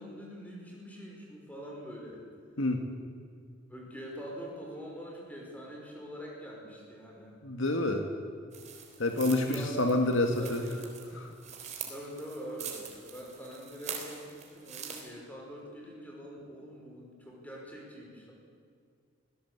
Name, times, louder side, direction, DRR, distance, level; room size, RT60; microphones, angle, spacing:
voice 1, 0.0-2.2 3.7-7.4 9.4-9.8 10.4-10.9 11.9-18.3, equal, 10° left, -2 dB, 5.4 m, -44 dB
voice 2, 7.4-8.1 9.0-10.6 11.1-11.3, left 2 dB, 80° left, 4 dB, 1.8 m, -28 dB
sound 1, 8.5-15.0, right 7 dB, 35° right, 3.6 m, -44 dB
24.5 x 17.0 x 8.2 m, 2.2 s
head